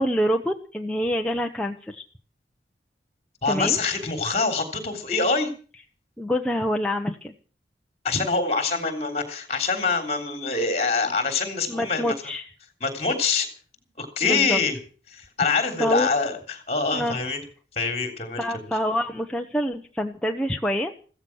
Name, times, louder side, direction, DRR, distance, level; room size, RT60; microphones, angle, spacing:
voice 1, 0.0-2.0 3.5-3.8 6.2-7.3 11.7-12.5 14.2-14.6 15.5-16.1 16.9-17.2 18.4-20.9, equal, 5° left, 2 dB, 0.8 m, -26 dB
voice 2, 3.4-5.5 8.0-12.1 12.8-13.5 14.0-14.8 15.1-17.4 17.8-18.7, left 4 dB, 35° left, 7 dB, 3.6 m, -25 dB
15.5 x 14.0 x 6.3 m, 0.41 s
head